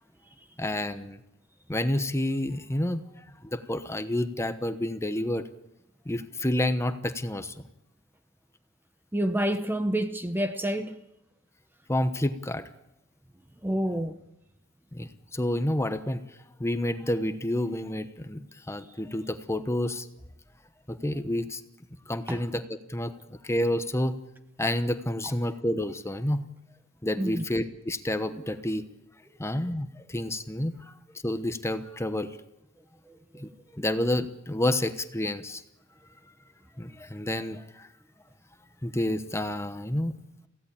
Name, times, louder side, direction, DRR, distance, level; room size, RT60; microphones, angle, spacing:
voice 1, 0.6-1.2 1.7-3.0 3.5-5.4 6.0-7.5 11.9-12.6 14.9-16.2 16.6-18.4 18.7-20.1 20.9-21.6 22.1-22.6 22.9-24.2 24.6-26.4 27.0-28.8 29.4-30.8 31.2-32.3 33.3-35.6 36.8-37.9 38.8-40.2, left 1 dB, 15° left, 10 dB, 1.0 m, -29 dB
voice 2, 9.1-11.0 13.6-14.2 22.3-22.4 25.2-25.3 27.2-27.4 33.1-33.5, right 1 dB, 10° right, 9 dB, 0.9 m, -29 dB
23.5 x 16.5 x 8.6 m, 0.90 s
head